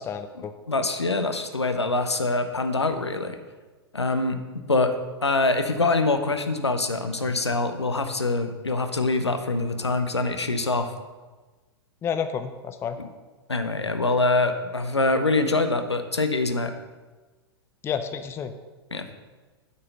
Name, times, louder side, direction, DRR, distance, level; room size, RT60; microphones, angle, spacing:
voice 1, 0.1-0.5 12.0-13.0 17.8-18.5, left 7 dB, 20° left, 9 dB, 0.5 m, -30 dB
voice 2, 0.7-3.4 3.9-10.9 13.0-13.1 13.5-16.7 18.9-19.1, left 3 dB, 85° left, 8 dB, 0.8 m, -24 dB
8.3 x 5.6 x 6.5 m, 1.3 s
figure-of-eight pair, 105°, 14 cm